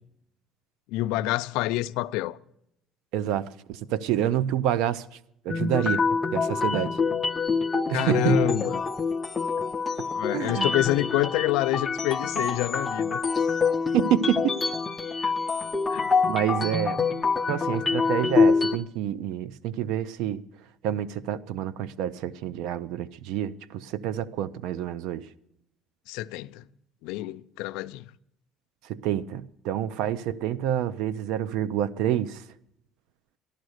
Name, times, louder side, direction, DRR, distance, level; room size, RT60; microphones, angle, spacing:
voice 1, 0.9-2.4 7.9-8.9 10.1-13.2 15.2-15.3 15.9-16.1 26.1-26.7 27.0-28.1, left 16 dB, 90° left, 0.5 m, -27 dB
voice 2, 3.1-5.0 5.4-6.0 6.3-7.0 7.9-8.7 10.3-10.7 13.9-14.5 16.3-17.0 17.5-20.4 20.8-25.2 28.9-32.4, right 11 dB, 80° right, 0.5 m, -28 dB
sound 1, 5.5-18.8, left 4 dB, 20° left, 0.7 m, -26 dB
14.5 x 11.5 x 6.4 m
cardioid pair, 135°, 0 cm